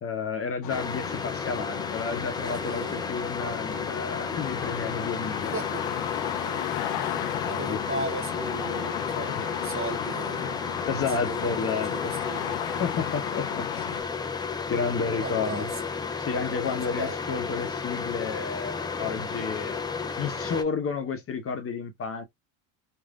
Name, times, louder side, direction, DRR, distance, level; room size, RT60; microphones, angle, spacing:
voice 1, 0.0-5.5 7.3-7.8 9.3-9.4 10.8-12.1 12.8-13.9 14.7-15.7 16.2-19.8 20.2-22.2, left 5 dB, 30° left, 0.8 m, -31 dB
sound 1, 0.6-14.0, left 14 dB, 60° left, 0.6 m, -35 dB
sound 2, 0.7-20.6, left 5 dB, 10° left, 0.4 m, -33 dB
voice 2, 2.6-3.1 5.5-10.7 11.1-12.6 15.2-16.0 16.5-17.2, right 4 dB, 30° right, 1.0 m, -38 dB
3.2 x 2.6 x 2.4 m
hypercardioid pair, 80°, 43 cm